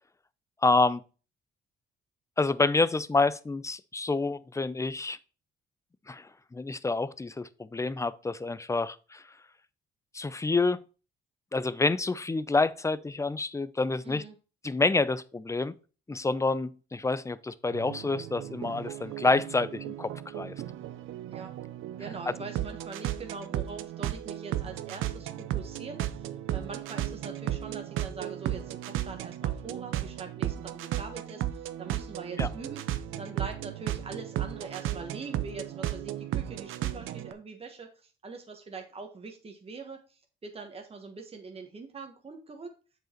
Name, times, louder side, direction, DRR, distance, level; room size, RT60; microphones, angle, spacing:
voice 1, 0.6-1.0 2.4-5.2 6.1-9.2 10.1-10.8 11.5-14.2 14.6-15.7 16.1-20.5 22.3-22.4 32.4-32.5, left 3 dB, 15° left, 0.5 m, -28 dB
voice 2, 14.0-14.4 21.3-21.5 22.0-32.8 33.2-42.7, right 4 dB, 30° right, 1.5 m, -43 dB
sound 1, 17.7-37.3, right 12 dB, 85° right, 0.6 m, -35 dB
7.6 x 4.9 x 4.5 m
cardioid pair, 90°, 20 cm